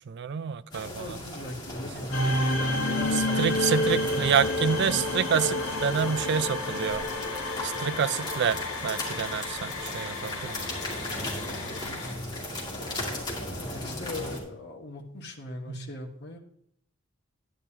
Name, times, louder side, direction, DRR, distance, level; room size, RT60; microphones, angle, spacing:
voice 1, 0.1-1.2 3.1-7.0 7.6-10.7 15.7-15.9, right 7 dB, 55° right, 0.4 m, -28 dB
sound 1, 0.7-14.4, left 1 dB, 20° left, 2.5 m, -37 dB
voice 2, 0.8-3.5 10.9-12.4 13.7-16.4, left 2 dB, 55° left, 1.3 m, -40 dB
sound 2, 2.1-12.1, left 1 dB, 80° left, 1.5 m, -30 dB
sound 3, 3.7-6.4 6.8-9.3 9.7-9.8, left 1 dB, ahead, 2.2 m, -51 dB
10.5 x 10.0 x 2.9 m
head